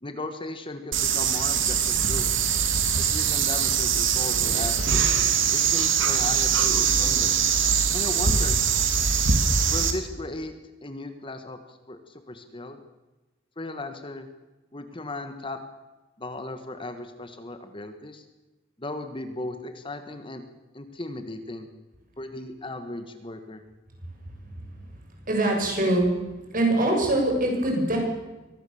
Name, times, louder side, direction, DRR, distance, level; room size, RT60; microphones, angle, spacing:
voice 1, 0.0-2.3 2.9-5.0 5.5-7.4 7.9-8.6 9.7-10.5 10.8-12.8 13.6-14.3 14.7-15.6 16.2-18.2 18.8-20.4 20.7-21.7 22.2-23.6, left 2 dB, 25° left, 8 dB, 1.5 m, -36 dB
sound 1, 0.9-9.9, right 7 dB, 80° right, 2.8 m, -22 dB
voice 2, 24.4-25.0 25.2-26.1 26.5-28.0, right 1 dB, 45° right, 1 dB, 7.2 m, -24 dB
24.0 x 18.0 x 7.2 m, 1.1 s
head